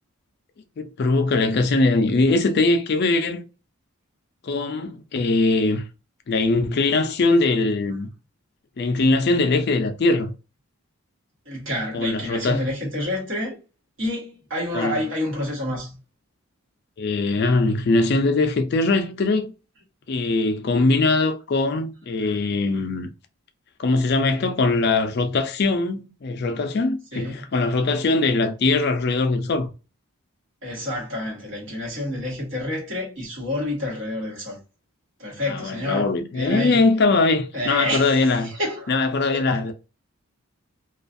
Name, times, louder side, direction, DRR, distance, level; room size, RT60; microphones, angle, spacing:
voice 1, 0.8-3.4 4.4-5.8 6.3-8.1 8.8-10.3 11.9-12.7 14.7-15.0 17.0-19.5 20.1-23.1 23.8-29.7 35.5-38.5 38.9-39.7, left 3 dB, 45° left, 0.4 m, -21 dB
voice 2, 11.5-13.5 14.0-16.0 22.2-22.3 27.1-27.4 30.6-34.6 35.2-36.8 37.5-38.9 39.3-39.5, left 1 dB, 55° right, 1.2 m, -29 dB
2.4 x 2.4 x 2.5 m
head